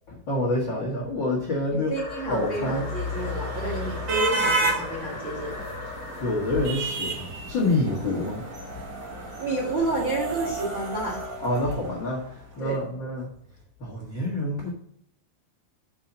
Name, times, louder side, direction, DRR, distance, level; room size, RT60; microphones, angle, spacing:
voice 1, 0.1-1.9 2.3-2.8 6.2-8.4 11.4-12.2 12.6-13.3 13.8-14.7, left 2 dB, 85° left, -3 dB, 1.0 m, -27 dB
voice 2, 1.7-5.6 9.4-11.3 12.6-12.8, right 2 dB, 65° right, -4 dB, 1.1 m, -30 dB
sound 1, 1.9-7.0 7.8-10.2, left 2 dB, 30° left, 0.8 m, -40 dB
sound 2, 2.0-12.3, right 2 dB, 50° right, 2.0 m, -32 dB
6.8 x 5.6 x 7.1 m, 0.72 s
omnidirectional pair, 5.2 m